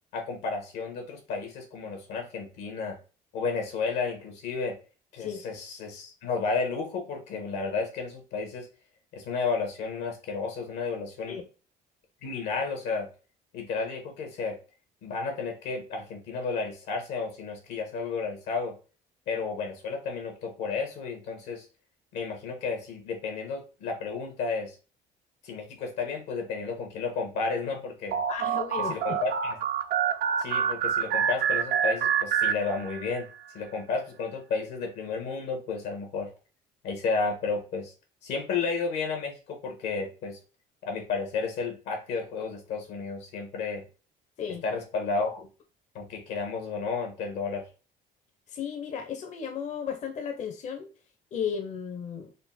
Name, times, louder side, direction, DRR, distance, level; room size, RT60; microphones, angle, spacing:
voice 1, 0.1-3.0 3.3-4.8 5.1-8.7 9.1-11.4 12.2-13.1 13.5-14.6 15.0-18.7 19.3-21.7 22.1-24.7 25.4-28.2 28.8-29.6 30.4-33.3 33.5-36.3 36.8-37.9 38.2-40.4 40.8-43.8 44.6-45.5 45.9-47.7, left 4 dB, 85° left, 3 dB, 1.4 m, -32 dB
sound 1, 28.1-33.2, right 7 dB, 60° right, 0.5 m, -27 dB
voice 2, 28.3-29.2 44.4-44.6 48.5-50.9 51.3-52.3, left 7 dB, 45° left, 5 dB, 0.6 m, -34 dB
4.2 x 2.1 x 4.1 m, 0.34 s
cardioid pair, 110°, 17 cm